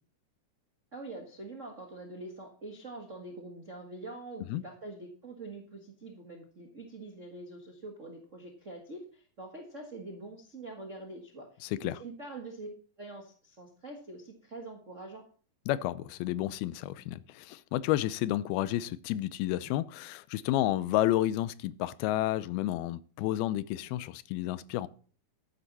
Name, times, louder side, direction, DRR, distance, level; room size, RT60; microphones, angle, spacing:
voice 1, 0.9-15.2, right 2 dB, 75° right, 0.7 m, -45 dB
voice 2, 11.6-12.0 15.7-24.9, left 14 dB, 85° left, 2.5 m, -31 dB
12.5 x 10.0 x 4.1 m
omnidirectional pair, 4.4 m